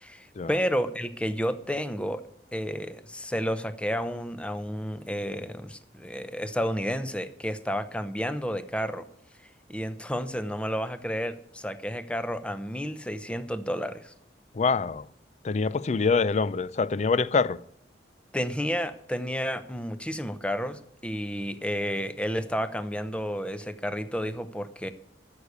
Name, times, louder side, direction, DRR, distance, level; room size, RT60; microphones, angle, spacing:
voice 1, 0.0-2.2 2.5-9.1 9.7-14.1 18.3-24.9, equal, 5° left, 0.7 m, -31 dB
voice 2, 14.5-15.1 15.4-17.6, left 4 dB, 40° left, 0.4 m, -25 dB
13.0 x 6.6 x 8.2 m
head